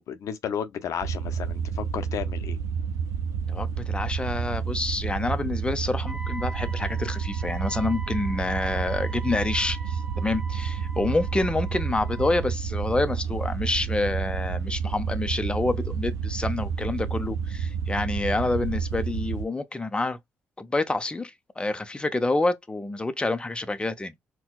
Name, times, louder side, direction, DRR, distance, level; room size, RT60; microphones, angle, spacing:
voice 1, 0.0-2.6, left 8 dB, 75° left, 0.6 m, -33 dB
sound 1, 1.0-19.4, right 6 dB, 80° right, 0.4 m, -30 dB
voice 2, 3.5-20.2 20.6-24.1, left 2 dB, 20° left, 0.6 m, -28 dB
Wind instrument woodwind instrument, 6.0-12.5, right 2 dB, 25° right, 0.7 m, -43 dB
4.2 x 2.2 x 2.3 m
cardioid pair, 70°, 5 cm